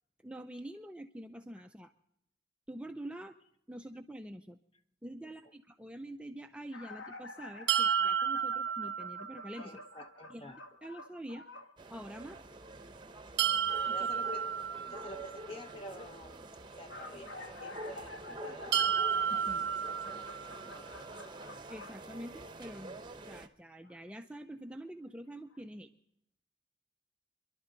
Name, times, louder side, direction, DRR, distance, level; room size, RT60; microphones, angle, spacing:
voice 1, 0.2-1.9 2.7-3.4 3.7-4.6 5.0-9.8 10.3-10.5 10.8-11.4 11.9-12.6 13.9-14.1 19.3-19.7 21.7-23.0 23.3-25.9, right 1 dB, 5° right, 5 dB, 0.5 m, -46 dB
sound 1, 6.7-11.7 16.6-22.7 23.8-24.0 25.0-25.1 25.5-25.6, left 3 dB, 80° left, 1.3 m, -49 dB
sound 2, 7.7-9.6 13.4-15.4 18.7-20.7, right 7 dB, 65° right, 0.6 m, -32 dB
voice 2, 9.6-10.6 13.9-14.5 14.9-16.5 16.8-18.8 19.8-21.2, left 1 dB, 30° left, 7 dB, 1.0 m, -49 dB
sound 3, 11.8-23.5, right 2 dB, 25° right, 0.8 m, -47 dB
28.0 x 11.5 x 3.9 m, 0.78 s
head